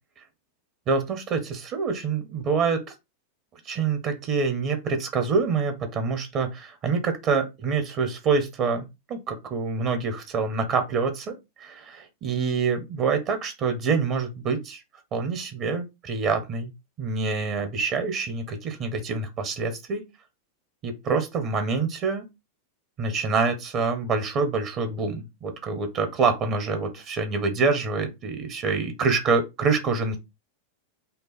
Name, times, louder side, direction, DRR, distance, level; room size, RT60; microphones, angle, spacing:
voice 1, 0.9-2.8 3.6-14.8 15.1-16.7 17.0-20.1 20.8-22.2 23.0-30.2, right 4 dB, 35° right, 1.0 m, -26 dB
5.5 x 2.1 x 4.1 m
figure-of-eight pair, 90°, 0 cm